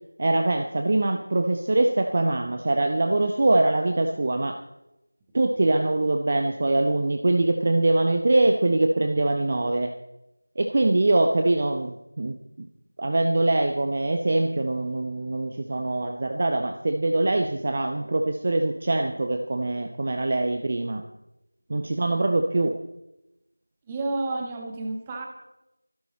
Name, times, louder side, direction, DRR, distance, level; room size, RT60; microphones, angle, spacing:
voice 1, 0.2-4.6 5.3-9.9 10.6-12.7 13.0-21.0 21.7-22.8, right 2 dB, 30° right, 5 dB, 0.7 m, -23 dB
voice 2, 23.9-25.2, right 2 dB, 10° right, 2 dB, 1.3 m, -30 dB
24.0 x 11.0 x 4.2 m, 0.94 s
figure-of-eight pair, 175°, 0 cm